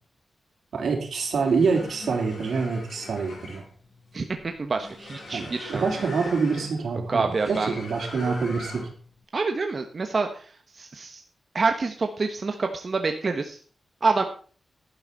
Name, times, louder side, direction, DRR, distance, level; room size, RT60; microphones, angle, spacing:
voice 1, 0.7-3.6 5.3-8.9, right 4 dB, 80° right, 3 dB, 3.6 m, -26 dB
sound 1, 1.3-9.1, left 2 dB, 80° left, 5.9 m, -41 dB
voice 2, 4.1-5.9 7.1-7.8 9.3-11.2 11.5-13.6 14.0-14.2, right 4 dB, 40° right, 5 dB, 1.3 m, -27 dB
11.5 x 11.0 x 4.1 m, 0.40 s
wide cardioid pair, 155°, 0 cm